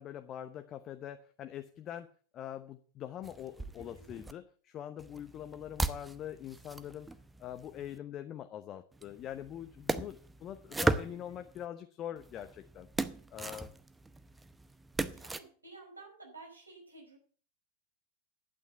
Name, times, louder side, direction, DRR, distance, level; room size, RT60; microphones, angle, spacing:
voice 1, 0.0-2.1 2.3-7.1 7.4-12.9 13.3-13.7, left 10 dB, 30° left, 8 dB, 0.8 m, -43 dB
sound 1, 3.2-4.3 5.0-8.0 8.9-11.7 12.2-15.4, right 2 dB, 10° right, 0.8 m, -38 dB
voice 2, 15.1-17.2, right 3 dB, 80° right, 1 dB, 5.2 m, -53 dB
11.5 x 8.9 x 5.8 m, 0.43 s
figure-of-eight pair, 90°, 0 cm